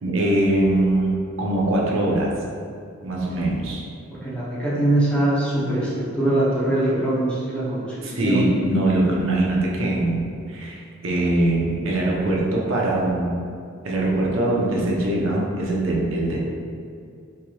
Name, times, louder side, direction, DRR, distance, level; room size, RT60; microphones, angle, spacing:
voice 1, 0.0-2.3 3.0-3.8 8.0-13.4 13.8-16.4, right 1 dB, 75° right, -4 dB, 0.7 m, -22 dB
voice 2, 4.1-8.6, right 1 dB, 5° left, -8 dB, 0.6 m, -23 dB
4.5 x 2.9 x 2.3 m, 2.4 s
head